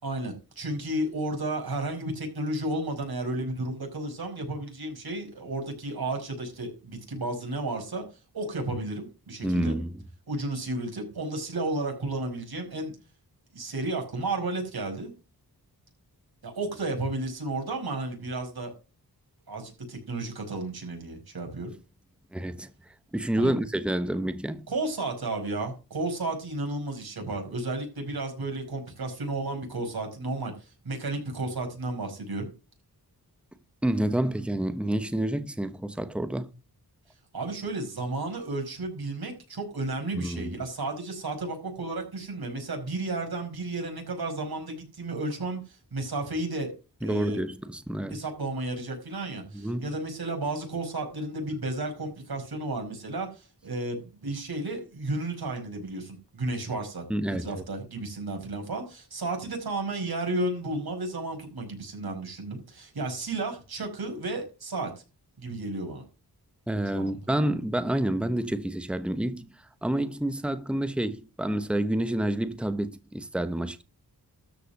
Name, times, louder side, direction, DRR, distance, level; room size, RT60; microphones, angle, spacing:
voice 1, 0.0-8.0 8.3-9.8 10.3-12.9 13.5-15.1 16.4-18.7 19.5-21.7 23.4-23.6 24.7-32.5 37.3-46.7 47.0-47.4 48.1-64.9 65.4-66.0 66.9-67.1, right 2 dB, 65° right, 5.1 m, -33 dB
voice 2, 9.4-9.9 22.3-22.7 23.1-24.7 33.8-36.5 40.1-40.6 47.0-48.2 49.5-49.9 57.1-57.5 66.7-73.8, right 1 dB, 5° right, 1.0 m, -28 dB
13.0 x 5.3 x 6.7 m
wide cardioid pair, 115°, 39 cm